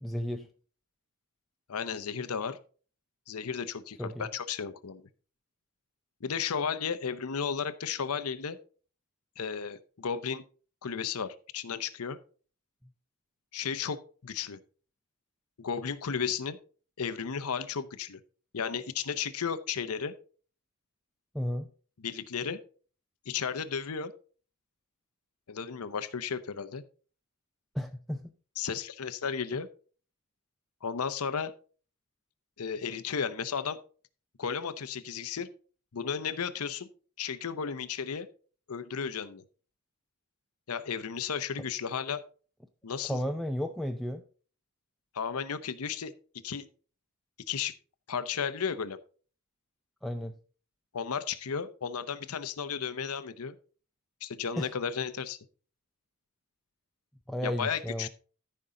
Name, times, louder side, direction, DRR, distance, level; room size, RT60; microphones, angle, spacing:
voice 1, 0.0-0.5 4.0-4.3 21.3-21.7 27.7-28.3 43.0-44.2 50.0-50.4 54.6-54.7 57.3-58.1, equal, ahead, 0.5 m, -33 dB
voice 2, 1.7-2.6 3.3-5.0 6.2-8.6 9.4-10.4 10.8-12.2 13.5-14.6 15.6-16.6 17.0-18.2 18.5-20.1 22.0-22.6 23.3-24.1 25.5-26.8 28.6-29.7 30.8-31.5 32.6-33.8 34.4-35.5 35.9-36.9 37.2-38.3 38.7-39.4 40.7-42.2 42.8-43.2 45.1-46.1 46.4-46.7 47.5-47.7 48.1-49.0 50.9-53.5 54.2-55.4 57.4-58.1, left 6 dB, 80° left, 0.7 m, -34 dB
14.0 x 5.5 x 3.8 m
head